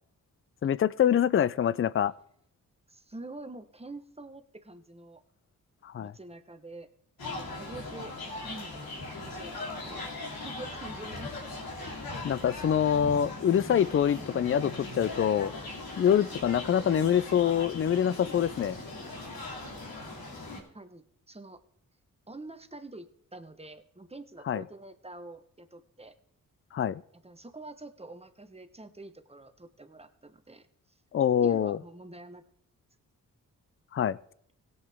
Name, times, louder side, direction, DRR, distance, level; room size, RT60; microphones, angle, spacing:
voice 1, 0.6-2.1 5.8-6.1 12.2-15.5 16.0-18.8 24.5-24.6 26.7-27.0 31.1-31.8 33.9-34.2, left 9 dB, 40° left, 20 dB, 0.4 m, -25 dB
voice 2, 2.9-5.2 6.0-6.9 7.2-8.1 8.4-10.0 10.3-11.4 20.3-20.5 20.7-21.6 22.3-26.1 27.1-31.0 31.4-32.4, right 2 dB, 15° right, 9 dB, 1.1 m, -46 dB
sound 1, 7.2-20.6, left 2 dB, 90° left, 2.7 m, -39 dB
17.0 x 8.0 x 3.5 m, 0.67 s
cardioid pair, 55°, 35 cm